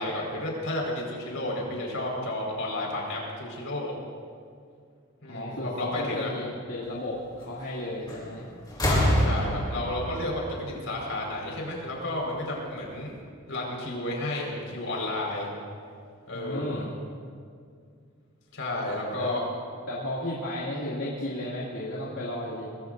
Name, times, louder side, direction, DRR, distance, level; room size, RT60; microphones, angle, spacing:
voice 1, 0.0-3.9 5.2-6.3 8.8-13.1 13.5-15.5 16.3-16.8 18.5-19.4, left 1 dB, 70° left, -2 dB, 5.0 m, -32 dB
voice 2, 5.3-8.5 16.3-16.9 19.2-19.3 19.9-22.7, left 1 dB, 85° left, -7 dB, 2.5 m, -33 dB
sound 1, 8.1-8.4 8.7-11.4 12.6-12.7, equal, 20° left, 3.5 m, -27 dB
23.0 x 21.0 x 2.6 m, 2.2 s
head